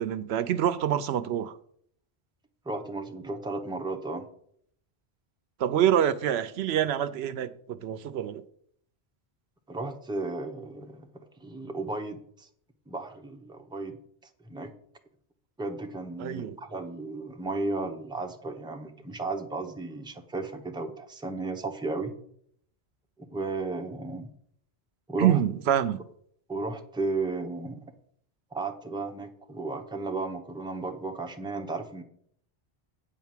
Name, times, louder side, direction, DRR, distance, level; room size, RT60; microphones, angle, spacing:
voice 1, 0.0-1.5 5.6-8.4 16.2-16.6 25.2-26.0, right 10 dB, 80° right, 0.8 m, -26 dB
voice 2, 2.6-4.3 9.7-12.5 12.9-14.0 14.4-14.7 15.6-22.1 23.2-24.3 25.1-25.4 26.5-27.8 28.5-32.0, right 3 dB, 5° right, 0.7 m, -34 dB
8.9 x 4.6 x 7.3 m
omnidirectional pair, 1.1 m